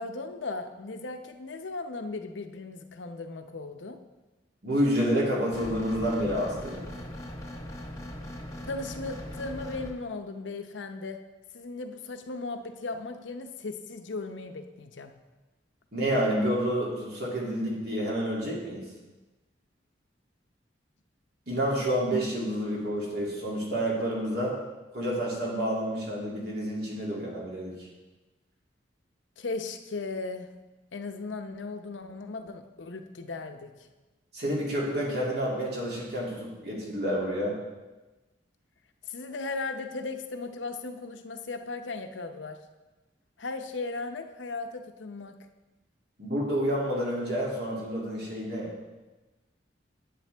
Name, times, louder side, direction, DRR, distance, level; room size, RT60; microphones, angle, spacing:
voice 1, 0.0-4.0 8.7-11.2 11.5-15.1 29.4-30.5 30.9-33.7 39.1-42.6 43.4-45.3, left 3 dB, 90° left, 7 dB, 0.7 m, -37 dB
voice 2, 4.6-6.9 15.9-18.8 21.5-24.5 24.9-27.9 34.3-37.5 46.2-48.7, equal, 60° right, -4 dB, 2.5 m, -29 dB
sound 1, 5.5-9.9, left 1 dB, 15° left, 1.1 m, -40 dB
10.0 x 8.4 x 3.4 m, 1.1 s
head